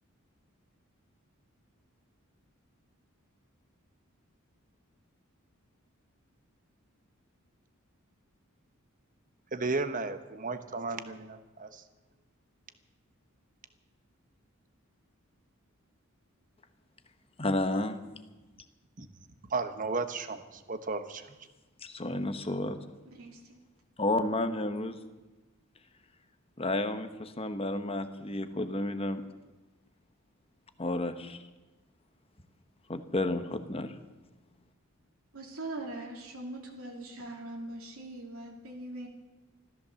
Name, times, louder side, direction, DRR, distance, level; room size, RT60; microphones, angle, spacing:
voice 1, 9.5-11.8 19.0-19.1 19.5-21.3, right 3 dB, 40° right, 10 dB, 1.0 m, -34 dB
voice 2, 17.4-18.0 21.8-22.8 24.0-25.0 26.6-29.2 30.8-31.4 32.9-33.9, left 2 dB, 25° left, 9 dB, 1.0 m, -31 dB
voice 3, 23.1-23.6 35.3-39.1, right 2 dB, 80° right, 0 dB, 2.3 m, -41 dB
14.5 x 14.0 x 7.0 m, 1.1 s
head